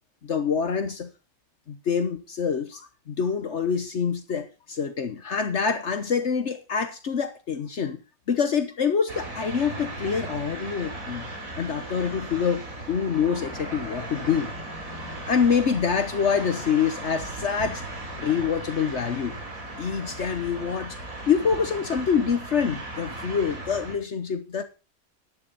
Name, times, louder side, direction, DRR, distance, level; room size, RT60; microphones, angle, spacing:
voice 1, 0.2-1.1 1.7-8.0 8.3-11.3 11.6-14.5 15.3-17.8 18.2-19.3 19.8-21.0 21.3-24.6, left 6 dB, 55° left, 1.3 m, -26 dB
sound 1, 9.1-24.0, right 2 dB, 75° right, 3.8 m, -37 dB
13.0 x 10.5 x 4.1 m
omnidirectional pair, 1.4 m